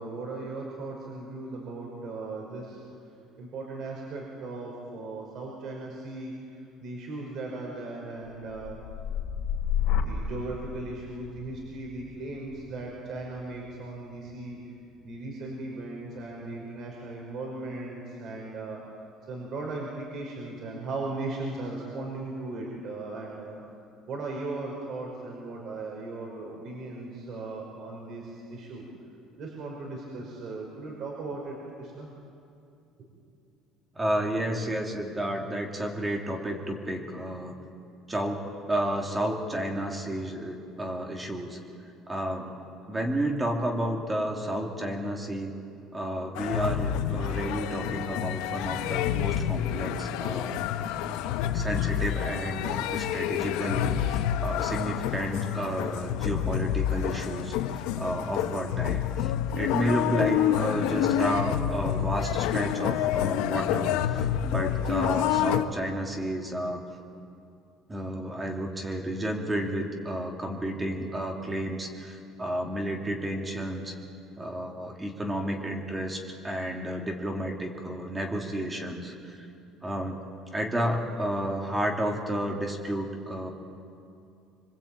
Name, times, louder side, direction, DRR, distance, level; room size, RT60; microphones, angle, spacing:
voice 1, 0.0-2.8 3.4-6.3 6.8-8.8 9.9-14.6 15.0-18.8 19.3-23.6 24.1-28.9 29.4-32.1, right 2 dB, 50° right, -1 dB, 5.5 m, -37 dB
sound 1, 8.3-16.3 16.7-17.2, left 8 dB, 65° left, 3.8 m, -34 dB
voice 2, 33.9-37.5 38.1-38.4 38.7-41.6 42.1-42.6 42.9-45.5 45.9-50.6 51.5-66.8 67.9-73.9 74.4-79.5 79.8-80.2 80.5-83.5, right 1 dB, 15° right, 1 dB, 2.8 m, -31 dB
sound 2, 46.3-65.7, left 10 dB, 90° left, 1.0 m, -28 dB
25.5 x 24.0 x 8.8 m, 2.6 s
cardioid pair, 150°, 0 cm